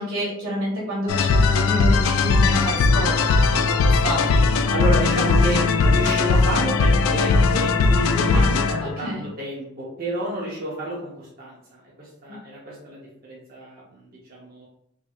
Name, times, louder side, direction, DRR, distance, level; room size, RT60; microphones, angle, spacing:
voice 1, 0.0-3.2 3.5-4.5 8.2-9.3 12.3-12.4, equal, 85° right, -5 dB, 1.4 m, -29 dB
sound 1, 1.1-9.0, left 4 dB, 80° left, 0.3 m, -19 dB
voice 2, 4.7-14.7, right 1 dB, 45° right, -5 dB, 0.7 m, -30 dB
3.3 x 3.0 x 2.4 m, 0.80 s
head